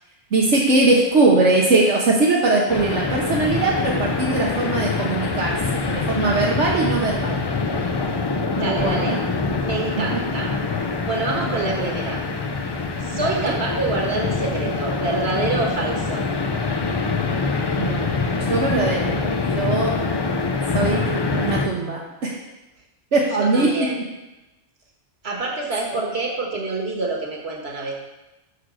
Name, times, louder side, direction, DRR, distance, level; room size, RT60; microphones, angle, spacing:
voice 1, 0.3-7.4 8.5-9.2 10.0-10.2 11.3-11.9 13.1-13.6 17.7-19.1 19.6-19.9 20.7-22.4 23.1-23.9 25.9-26.1, right 3 dB, 75° right, -3 dB, 1.3 m, -21 dB
sound 1, 2.7-21.7, left 4 dB, 40° left, 0.3 m, -24 dB
voice 2, 8.5-9.1 9.6-10.5 11.0-12.2 13.0-16.2 23.4-24.0 25.2-27.9, right 3 dB, 60° right, 0 dB, 1.7 m, -26 dB
6.5 x 6.2 x 6.2 m, 1.0 s
omnidirectional pair, 1.2 m